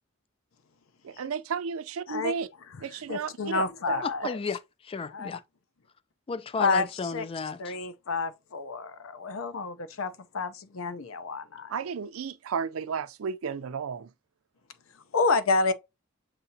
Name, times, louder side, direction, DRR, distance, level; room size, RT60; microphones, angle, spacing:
voice 1, 1.0-2.5 2.8-4.0 11.7-14.1, right 6 dB, 85° right, 0.4 m, -33 dB
voice 2, 3.1-4.4 5.1-5.4 6.6-6.9 7.1-7.2 7.6-8.9 9.2-11.7 15.1-15.7, left 4 dB, 75° left, 0.6 m, -29 dB
voice 3, 4.0-5.4 6.3-7.7, left 5 dB, 25° left, 0.3 m, -33 dB
6.8 x 2.7 x 2.7 m
head